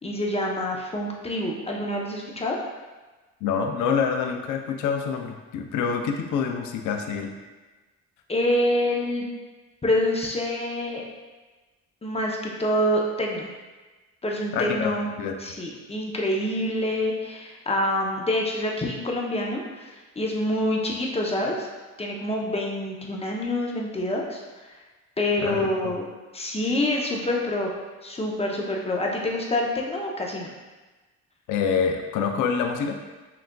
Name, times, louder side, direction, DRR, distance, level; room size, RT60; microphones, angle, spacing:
voice 1, 0.0-2.6 8.3-9.2 9.8-11.0 12.0-13.5 14.2-15.1 15.4-21.7 22.0-24.7 25.2-26.1 26.3-27.7 28.0-30.5, left 1 dB, 20° left, -1 dB, 0.6 m, -26 dB
voice 2, 3.4-7.3 14.5-14.9 15.2-15.3 25.4-25.9 31.5-33.0, left 6 dB, 80° left, 4 dB, 0.5 m, -26 dB
5.8 x 2.5 x 2.2 m, 1.2 s
cardioid pair, 90°, 30 cm